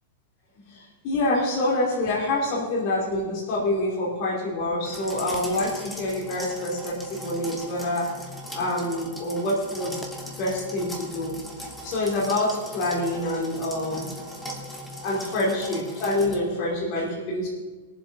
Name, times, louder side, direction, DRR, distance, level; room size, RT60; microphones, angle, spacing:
voice 1, 0.7-8.1 8.5-10.0 10.4-11.3 11.8-14.1 15.0-17.5, left 1 dB, 40° left, -5 dB, 2.8 m, -26 dB
sound 1, 4.9-16.4, equal, 5° left, 1.2 m, -39 dB
21.0 x 7.5 x 4.1 m, 1.3 s
supercardioid pair, 165°, 0 cm